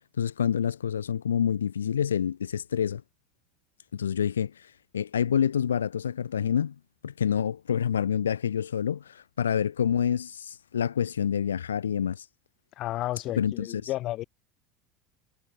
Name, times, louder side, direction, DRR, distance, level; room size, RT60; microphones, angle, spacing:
voice 1, 0.2-3.0 3.9-6.7 7.0-12.3 13.4-13.8, left 8 dB, 75° left, 2.1 m, -27 dB
voice 2, 12.8-14.2, left 16 dB, 45° left, 2.7 m, -32 dB
figure-of-eight pair, 75°, 0 cm